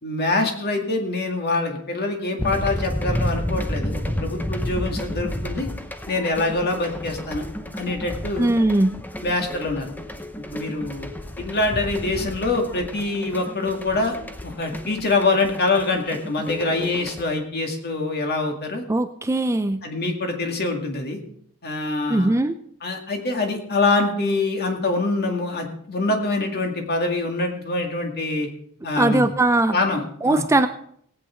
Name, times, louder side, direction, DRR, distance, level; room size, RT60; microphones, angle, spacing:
voice 1, 0.0-5.7 6.1-7.5 7.8-8.5 9.2-9.9 10.5-11.1 11.4-14.2 14.4-18.8 19.8-21.2 21.6-22.3 22.8-28.5 28.8-29.3 29.7-30.5, left 2 dB, 45° left, 3 dB, 2.1 m, -24 dB
sound 1, 2.4-17.2, equal, 10° left, 0.8 m, -31 dB
voice 2, 8.4-8.9 18.9-19.8 22.1-22.5 29.0-29.8 30.2-30.7, right 2 dB, 15° right, 9 dB, 0.4 m, -20 dB
18.0 x 8.4 x 4.4 m, 0.66 s
head